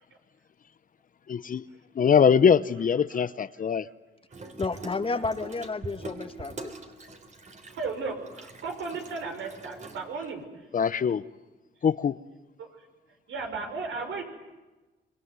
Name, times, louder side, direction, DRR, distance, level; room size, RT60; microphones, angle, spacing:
voice 1, 1.3-1.6 2.0-3.9 10.7-11.2 11.8-12.2, left 7 dB, 45° left, 0.9 m, -22 dB
Water tap faucet / Sink (filling or washing), 4.3-10.4, right 3 dB, 35° right, 3.6 m, -44 dB
voice 2, 4.6-6.7, left 3 dB, 25° left, 1.9 m, -31 dB
voice 3, 7.7-10.7 12.6-12.9 13.3-14.2, right 4 dB, 75° right, 6.1 m, -35 dB
26.5 x 22.5 x 9.6 m
cardioid pair, 90°, 20 cm